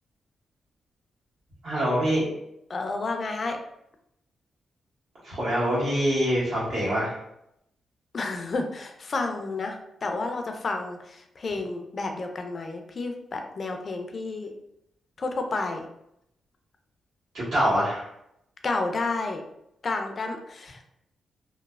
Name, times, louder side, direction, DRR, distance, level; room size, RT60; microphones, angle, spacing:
voice 1, 1.6-2.2 5.2-7.2 17.3-18.1, equal, 70° right, -8 dB, 1.5 m, -25 dB
voice 2, 2.7-3.6 8.1-14.5 15.2-15.9 18.6-19.4 19.8-20.8, left 3 dB, 45° left, 4 dB, 0.4 m, -31 dB
3.0 x 2.0 x 2.3 m, 0.80 s
cardioid pair, 75°, 0 cm